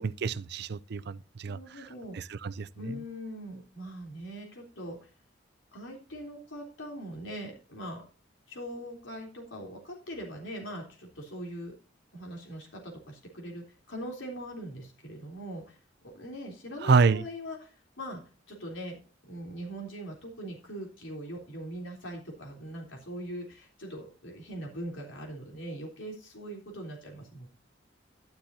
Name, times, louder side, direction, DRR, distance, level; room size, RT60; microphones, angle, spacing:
voice 1, 0.0-1.6 2.2-2.7 16.8-17.2, right 5 dB, 60° right, 0.5 m, -26 dB
voice 2, 1.5-2.2 2.8-5.1 5.7-8.0 8.5-11.7 12.1-15.8 16.0-18.2 18.5-19.0 19.3-27.5, equal, 85° left, 3.5 m, -41 dB
12.0 x 10.0 x 2.7 m
head